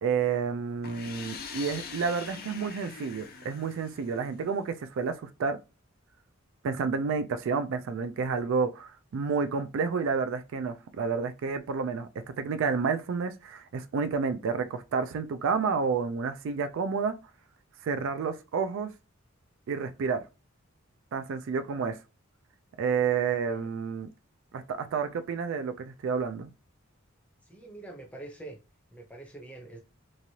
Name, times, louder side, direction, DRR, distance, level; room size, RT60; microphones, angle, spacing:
voice 1, 0.0-5.6 6.6-12.1 12.4-17.1 17.8-18.9 19.7-20.2 21.1-22.0 22.8-24.1 24.5-26.5, right 5 dB, 65° right, 0.3 m, -30 dB
sound 1, 0.8-4.6, left 6 dB, 50° left, 0.5 m, -43 dB
voice 2, 27.5-28.6 28.9-29.8, right 2 dB, 5° left, 0.6 m, -45 dB
3.1 x 2.4 x 2.7 m
head